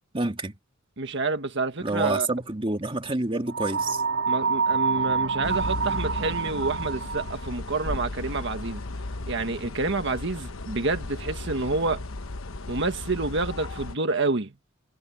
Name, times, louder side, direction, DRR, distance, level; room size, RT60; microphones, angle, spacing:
voice 1, 0.1-0.5 1.8-4.0, right 2 dB, 25° right, 2.1 m, -28 dB
voice 2, 1.0-2.3 4.3-8.8 9.3-12.0 12.7-14.5, right 3 dB, 60° right, 1.6 m, -28 dB
sound 1, 3.5-7.5, right 5 dB, 80° right, 4.1 m, -27 dB
sound 2, 5.4-14.0, left 2 dB, 85° left, 1.0 m, -36 dB
head